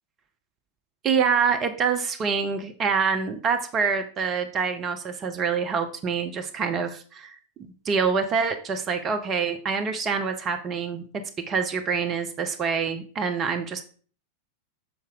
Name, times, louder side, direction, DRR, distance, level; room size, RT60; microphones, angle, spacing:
voice 1, 1.0-11.0 11.5-13.8, right 5 dB, 30° right, 7 dB, 0.7 m, -26 dB
6.9 x 4.2 x 3.8 m, 0.42 s
figure-of-eight pair, 90°, 0 cm